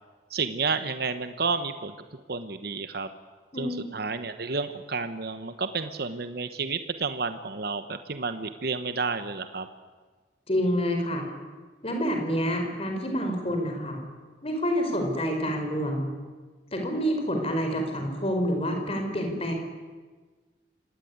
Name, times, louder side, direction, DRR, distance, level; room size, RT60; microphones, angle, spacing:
voice 1, 0.3-3.1 3.6-9.7, right 4 dB, 60° right, 10 dB, 1.1 m, -31 dB
voice 2, 3.5-3.9 10.5-11.3 11.8-14.0 14.4-16.1 16.7-19.5, equal, 35° left, 3 dB, 5.2 m, -28 dB
25.5 x 18.5 x 9.6 m, 1.4 s
head